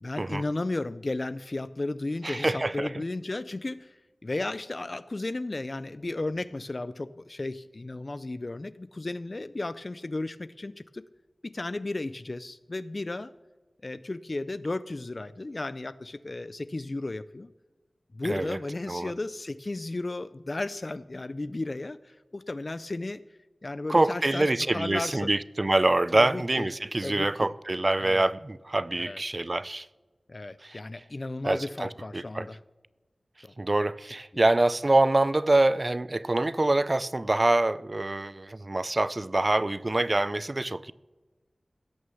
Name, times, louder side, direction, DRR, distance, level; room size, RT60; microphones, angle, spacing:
voice 1, 0.0-11.0 11.4-13.3 13.8-17.5 18.1-23.2 23.6-25.3 26.1-26.7 27.0-27.5 28.0-28.3 28.9-29.2 30.3-32.6 33.4-33.5, left 2 dB, 50° left, 0.4 m, -34 dB
voice 2, 2.2-3.0 18.2-18.6 18.9-19.1 23.9-29.9 30.6-30.8 31.4-32.5 33.6-40.9, right 2 dB, 40° right, 0.5 m, -25 dB
17.0 x 6.4 x 7.0 m
wide cardioid pair, 55°, 0 cm